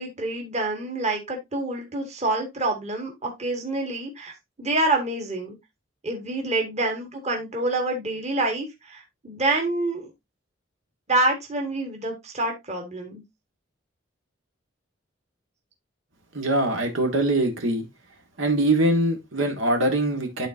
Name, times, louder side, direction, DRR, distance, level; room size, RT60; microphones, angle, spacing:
voice 1, 0.0-4.3 4.6-5.6 6.0-10.1 11.1-13.2, right 2 dB, 35° right, 1.7 m, -27 dB
voice 2, 16.3-17.9 18.4-20.5, right 1 dB, 75° right, 1.9 m, -23 dB
12.0 x 4.1 x 2.7 m
head